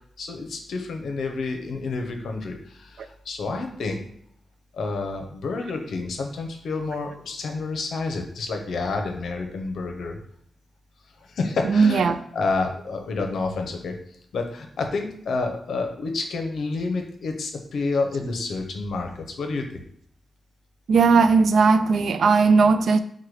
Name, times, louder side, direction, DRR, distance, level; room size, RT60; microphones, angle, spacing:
voice 1, 0.2-4.0 4.7-10.2 11.2-14.0 14.3-19.8, left 3 dB, 75° left, 0.7 m, -29 dB
voice 2, 11.7-12.2 20.9-23.0, right 4 dB, 75° right, 0.3 m, -17 dB
4.7 x 2.2 x 4.7 m
wide cardioid pair, 135°, 0 cm